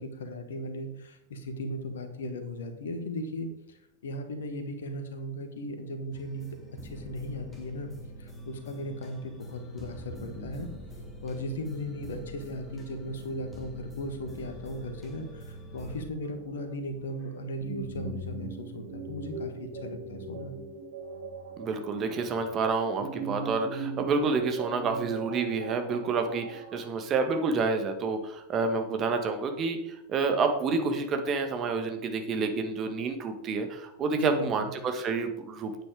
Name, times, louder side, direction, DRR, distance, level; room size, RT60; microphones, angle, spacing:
voice 1, 0.0-7.9 8.2-10.7 11.2-20.5 34.1-34.7, left 1 dB, 65° left, 8 dB, 1.6 m, -37 dB
sound 1, 6.1-16.1, equal, 10° left, 2.7 m, -44 dB
sound 2, 16.2-26.9, right 4 dB, 55° right, 2.2 m, -40 dB
voice 2, 21.6-35.8, right 4 dB, 30° right, 6 dB, 1.5 m, -29 dB
9.1 x 8.9 x 4.8 m, 0.82 s
figure-of-eight pair, 90°, 0 cm